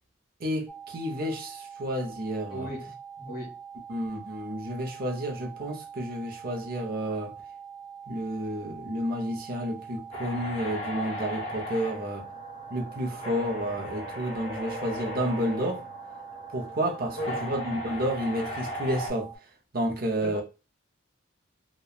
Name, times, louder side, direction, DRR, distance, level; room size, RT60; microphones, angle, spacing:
voice 1, 0.4-2.7 3.9-7.3 8.1-12.3 12.7-15.8 16.5-19.3 19.7-20.4, equal, 45° right, 0.6 m, -31 dB
sound 1, 0.7-19.4, right 7 dB, 5° left, 0.3 m, -44 dB
voice 2, 2.5-2.9 3.2-3.5 17.2-17.5 20.2-20.4, equal, 50° left, 1.1 m, -36 dB
sound 2, 10.1-19.1, equal, 30° left, 1.4 m, -37 dB
2.9 x 2.2 x 2.3 m
head